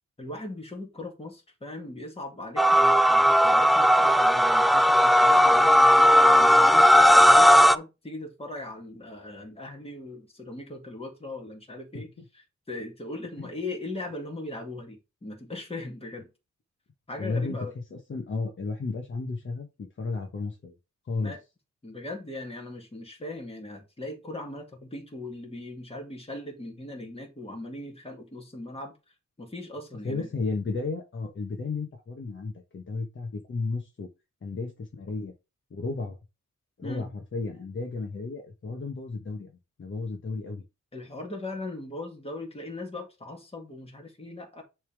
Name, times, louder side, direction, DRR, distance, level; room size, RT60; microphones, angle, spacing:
voice 1, 0.2-12.1 12.7-16.3 17.1-17.7 21.2-21.4 21.8-28.9 29.4-30.3 36.8-37.1 40.9-44.6, left 2 dB, 20° left, 2.2 m, -39 dB
sound 1, 2.6-7.8, equal, ahead, 0.3 m, -17 dB
voice 2, 17.2-20.8 21.0-21.3 30.0-34.1 34.4-35.3 35.7-36.2 36.8-40.6, left 3 dB, 40° left, 1.2 m, -33 dB
10.5 x 3.6 x 3.5 m
wide cardioid pair, 130°, 29 cm